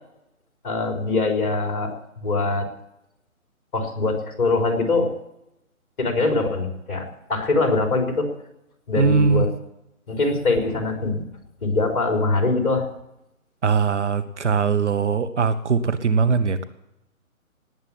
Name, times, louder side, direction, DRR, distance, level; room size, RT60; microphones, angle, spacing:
voice 1, 0.6-2.7 3.7-5.1 6.0-7.0 7.3-8.3 8.9-9.5 10.1-11.2 11.6-12.9, left 3 dB, 35° left, 3 dB, 3.8 m, -23 dB
voice 2, 9.0-9.5 13.6-16.6, right 5 dB, 55° right, 11 dB, 1.3 m, -21 dB
19.0 x 8.0 x 8.7 m, 0.86 s
figure-of-eight pair, 155°, 42 cm